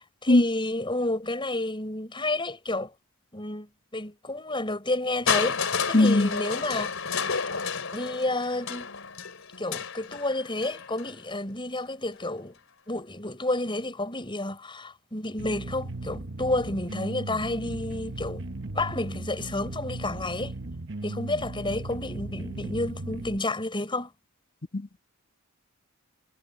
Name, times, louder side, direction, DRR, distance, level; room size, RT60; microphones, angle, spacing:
voice 1, 0.0-2.9 3.3-5.6 5.9-6.9 7.9-8.9 9.6-12.5 12.9-18.4 18.7-20.5 21.0-24.1, left 2 dB, 20° left, 7.3 m, -30 dB
Crushing, 5.3-11.2 12.1-12.2, left 6 dB, 65° left, 4.3 m, -31 dB
voice 2, 5.9-6.3 24.7-25.0, left 2 dB, 40° left, 1.8 m, -20 dB
sound 1, 15.4-23.4, right 2 dB, 55° right, 1.2 m, -37 dB
head